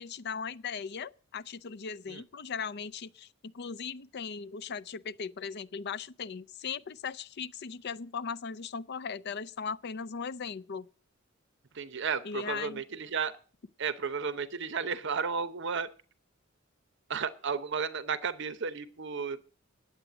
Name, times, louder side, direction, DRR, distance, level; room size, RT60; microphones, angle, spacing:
voice 1, 0.0-10.9 12.2-12.8, left 6 dB, 55° left, 0.5 m, -38 dB
voice 2, 11.7-13.3 13.8-15.9 17.1-19.4, right 6 dB, 60° right, 0.8 m, -33 dB
10.0 x 8.0 x 7.8 m
head